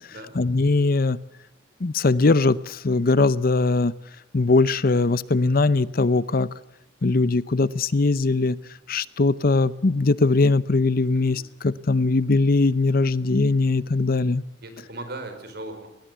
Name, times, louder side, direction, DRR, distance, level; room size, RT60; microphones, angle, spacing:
voice 1, 0.4-1.2 1.8-3.9 4.3-6.5 7.0-8.6 8.9-14.4, left 3 dB, 55° left, 18 dB, 0.7 m, -20 dB
voice 2, 14.6-15.9, right 2 dB, 60° right, 8 dB, 5.0 m, -38 dB
20.5 x 20.5 x 8.2 m, 0.95 s
head